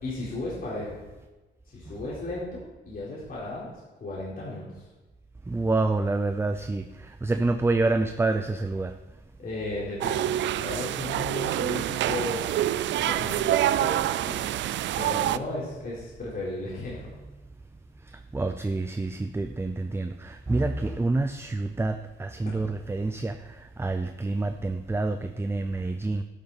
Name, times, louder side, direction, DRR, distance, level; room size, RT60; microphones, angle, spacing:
voice 1, 0.0-0.9 1.7-3.7 4.0-4.8 9.4-14.4 15.0-17.1, left 2 dB, 45° left, -7 dB, 4.2 m, -35 dB
voice 2, 5.5-6.9 7.2-8.9 18.3-23.4 23.8-26.2, right 2 dB, 10° right, 8 dB, 0.6 m, -27 dB
sound 1, 10.0-15.4, right 13 dB, 65° right, 0.4 m, -26 dB
11.5 x 11.0 x 4.2 m, 1.2 s
cardioid pair, 90°, 20 cm